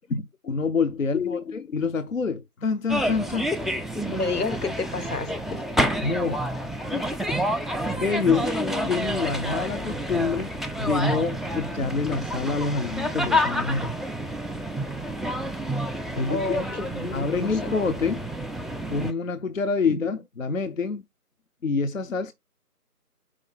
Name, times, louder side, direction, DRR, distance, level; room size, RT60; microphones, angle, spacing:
voice 1, 0.5-1.4 1.7-3.5 6.0-6.4 8.0-8.5 8.9-10.5 10.8-13.9 16.2-16.8 17.1-18.2 18.9-21.0 21.6-22.3, left 4 dB, 55° left, 0.7 m, -26 dB
voice 2, 1.1-1.8 3.9-5.6 6.9-7.5 8.4-9.0 16.3-17.7, left 3 dB, 75° left, 1.1 m, -31 dB
sound 1, 2.9-19.1, equal, ahead, 0.4 m, -29 dB
5.1 x 4.9 x 5.5 m
figure-of-eight pair, 160°, 47 cm